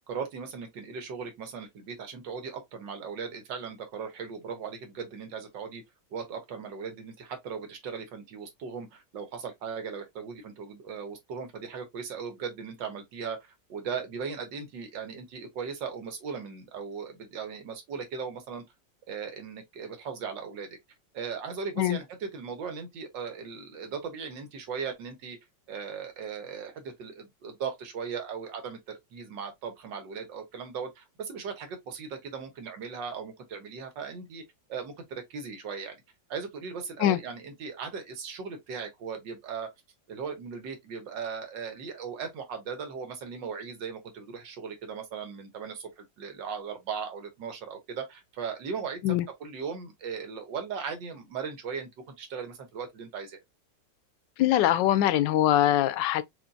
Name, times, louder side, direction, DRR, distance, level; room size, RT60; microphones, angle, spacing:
voice 1, 0.1-5.8 6.1-18.6 19.1-20.7 21.1-25.4 25.7-34.4 34.7-36.0 36.3-39.7 40.1-53.4, right 6 dB, 85° right, 1.8 m, -38 dB
voice 2, 54.4-56.2, left 12 dB, 80° left, 1.2 m, -23 dB
5.1 x 2.6 x 2.6 m
omnidirectional pair, 1.9 m